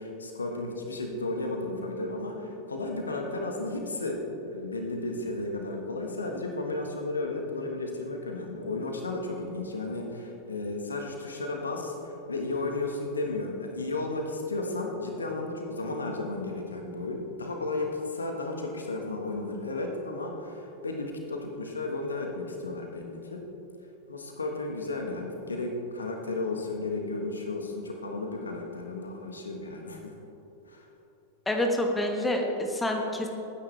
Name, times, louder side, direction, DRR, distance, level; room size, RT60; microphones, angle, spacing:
voice 1, 0.0-23.4 24.1-30.1 30.7-30.9, left 2 dB, 75° left, 2 dB, 1.5 m, -33 dB
voice 2, 31.4-33.3, left 1 dB, 10° left, 2 dB, 1.4 m, -27 dB
19.5 x 9.8 x 3.4 m, 3.0 s
figure-of-eight pair, 90°, 0 cm